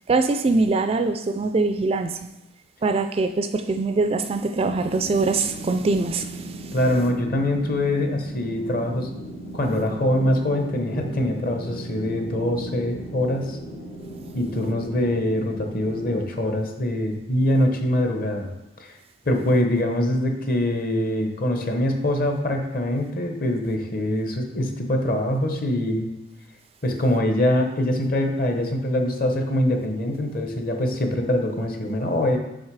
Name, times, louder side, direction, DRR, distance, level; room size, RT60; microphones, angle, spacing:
voice 1, 0.1-2.2 2.8-6.7, right 3 dB, 30° right, 8 dB, 0.3 m, -23 dB
sound 1, 4.5-16.2, right 1 dB, 75° left, 1.7 m, -37 dB
voice 2, 6.7-9.1 9.5-13.6 14.3-18.5 18.8-18.9 19.2-26.1 26.8-32.4, left 1 dB, 45° left, 4 dB, 1.0 m, -23 dB
6.3 x 5.3 x 4.8 m, 0.93 s
head